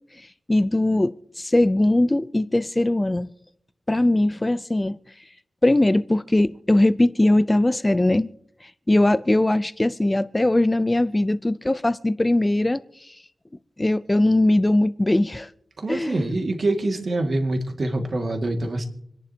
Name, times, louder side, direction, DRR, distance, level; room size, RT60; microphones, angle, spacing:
voice 1, 0.2-3.3 3.9-5.0 5.6-8.3 8.6-13.2 13.8-15.5 15.9-16.3, left 1 dB, 20° left, 0.5 m, -20 dB
voice 2, 15.8-18.8, right 2 dB, 55° right, 2.1 m, -25 dB
27.0 x 11.0 x 2.9 m
wide cardioid pair, 80°, 0 cm